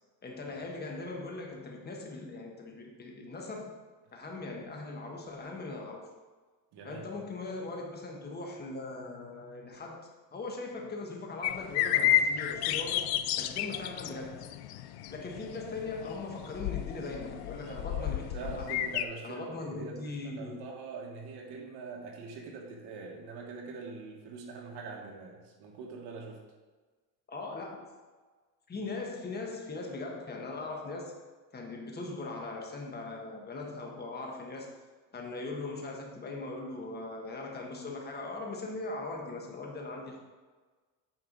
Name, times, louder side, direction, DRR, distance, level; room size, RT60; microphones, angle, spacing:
voice 1, 0.2-3.7 4.1-6.1 6.8-13.1 13.4-14.4 15.1-18.3 18.6-18.8 19.2-20.6 27.3-27.9 28.7-31.2 31.5-34.7 35.1-40.2, left 3 dB, 25° left, 0 dB, 1.3 m, -40 dB
voice 2, 6.7-7.1 17.6-26.4, right 4 dB, 70° right, 0 dB, 1.7 m, -43 dB
sound 1, 11.4-19.0, left 11 dB, 65° left, 0.6 m, -32 dB
9.3 x 4.6 x 3.9 m, 1.4 s
cardioid pair, 135°, 41 cm